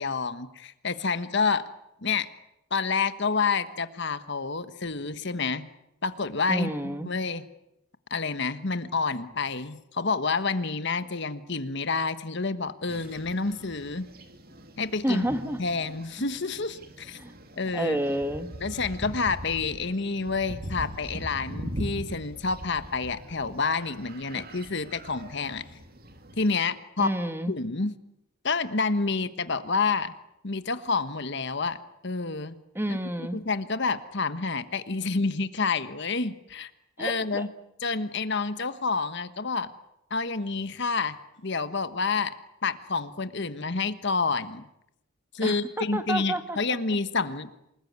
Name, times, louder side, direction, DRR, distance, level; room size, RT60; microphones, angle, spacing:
voice 1, 0.0-1.6 2.0-2.3 2.7-5.7 6.0-7.4 8.1-14.1 14.8-15.2 15.6-17.2 17.6-18.0 18.6-25.6 26.4-27.1 27.5-27.9 28.4-30.1 30.4-31.8 32.0-32.6 32.9-33.0 33.3-36.7 37.0-37.5 37.8-39.7 40.1-41.2 41.4-42.3 42.6-44.6 45.3-47.5, left 4 dB, 55° left, 12 dB, 1.3 m, -28 dB
voice 2, 6.5-7.1 15.0-15.6 17.2-17.3 17.7-18.5 27.0-27.5 32.7-33.4 37.0-37.5 45.4-46.6, right 1 dB, 10° right, 9 dB, 1.6 m, -29 dB
sound 1, 12.9-26.5, equal, 45° right, 2.5 m, -41 dB
27.5 x 20.0 x 9.6 m, 0.83 s
head